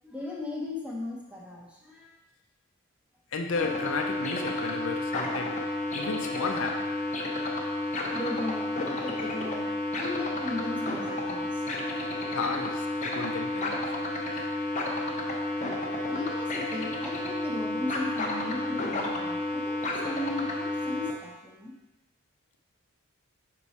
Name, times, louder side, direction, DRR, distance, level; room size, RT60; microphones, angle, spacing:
voice 1, 0.0-2.1 8.1-11.6 16.1-21.7, left 2 dB, 5° right, -3 dB, 0.9 m, -37 dB
voice 2, 3.3-5.6 5.9-7.0 11.9-12.1 12.3-13.9 14.3-14.4, left 4 dB, 65° left, 3 dB, 0.6 m, -33 dB
sound 1, 3.5-21.1, left 2 dB, 35° left, 0.8 m, -31 dB
6.1 x 4.5 x 4.2 m, 1.0 s
head